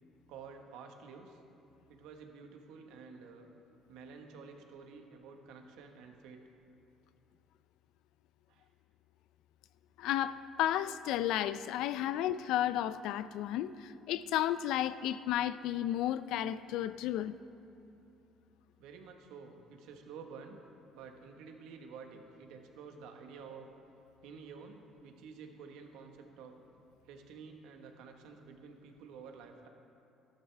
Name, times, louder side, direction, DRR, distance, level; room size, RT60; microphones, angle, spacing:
voice 1, 0.3-1.4 1.9-3.5 3.9-6.4 8.5-8.7 18.8-20.6 20.9-23.7 24.2-26.5 27.0-29.7, right 5 dB, 90° right, 4 dB, 1.3 m, -50 dB
voice 2, 10.0-17.3, left 12 dB, 75° left, 15 dB, 0.4 m, -33 dB
15.0 x 12.5 x 3.4 m, 2.8 s
cardioid pair, 155°, 0 cm